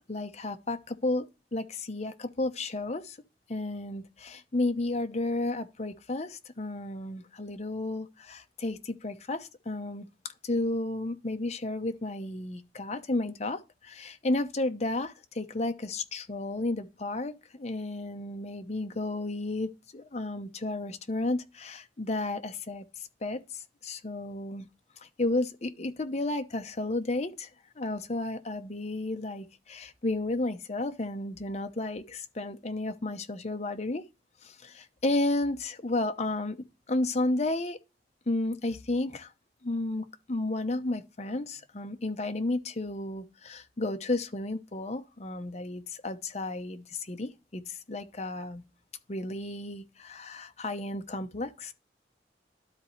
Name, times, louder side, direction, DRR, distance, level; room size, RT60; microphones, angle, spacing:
voice 1, 0.1-1.3 1.5-3.2 3.5-10.1 10.4-24.7 25.2-27.5 27.8-34.0 34.4-36.6 36.9-37.8 38.3-39.3 39.6-48.6 49.1-51.7, left 2 dB, 40° left, 0.8 m, -32 dB
12.5 x 4.2 x 3.1 m
head